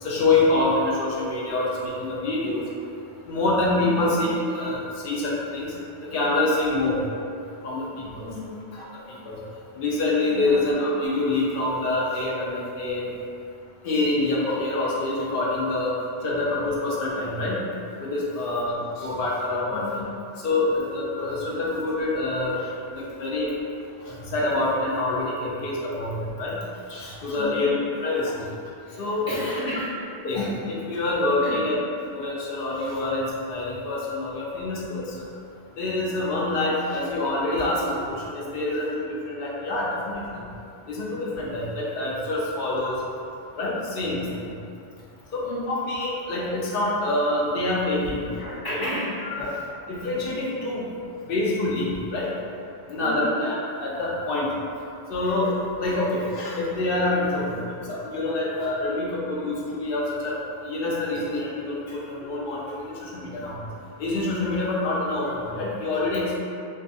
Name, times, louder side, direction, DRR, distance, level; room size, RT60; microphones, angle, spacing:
voice 1, 0.0-2.6 3.3-5.7 6.1-7.0 7.6-8.3 8.7-9.4 9.8-13.0 13.8-16.0 16.2-17.6 18.0-20.0 20.4-22.6 22.9-23.5 24.0-26.6 26.9-27.8 28.0-28.4 29.0-29.3 30.2-31.8 32.1-35.1 35.8-40.3 40.9-42.9 43.6-44.5 45.3-48.2 48.7-48.8 49.2-49.5 49.9-50.9 51.3-52.3 52.9-54.5 55.1-63.6 64.0-66.4, left 2 dB, 65° left, -5 dB, 0.7 m, -26 dB
voice 2, 3.8-4.1 8.2-8.6 10.3-10.6 19.7-20.1 27.3-27.7 28.8-30.0 31.4-31.7 45.4-45.8 48.3-49.6 53.0-53.4, left 1 dB, 25° left, -10 dB, 0.6 m, -33 dB
2.3 x 2.3 x 2.6 m, 2.5 s
omnidirectional pair, 1.1 m